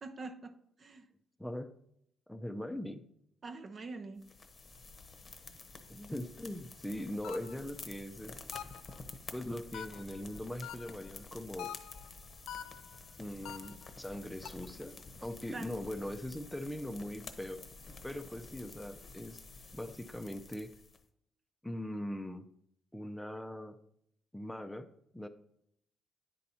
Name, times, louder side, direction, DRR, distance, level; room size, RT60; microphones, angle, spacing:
voice 1, 0.0-1.0 3.4-4.2 15.5-15.8, right 3 dB, 45° right, 0.7 m, -45 dB
voice 2, 1.4-1.7 2.3-3.0 5.9-8.4 9.3-11.7 13.2-14.9 15.2-17.6 18.0-19.4 19.7-20.7 21.6-22.5 22.9-23.8 24.3-24.9 25.1-25.3, left 1 dB, 5° left, 0.6 m, -41 dB
sound 1, 4.2-21.0, left 3 dB, 35° left, 0.9 m, -50 dB
sound 2, 7.2-7.7 8.5-9.0 9.7-10.2 10.6-11.1 11.6-12.1 12.5-13.0 13.5-13.9 14.5-14.8, left 11 dB, 85° left, 0.3 m, -45 dB
9.9 x 4.1 x 4.2 m
cardioid pair, 90°, 0 cm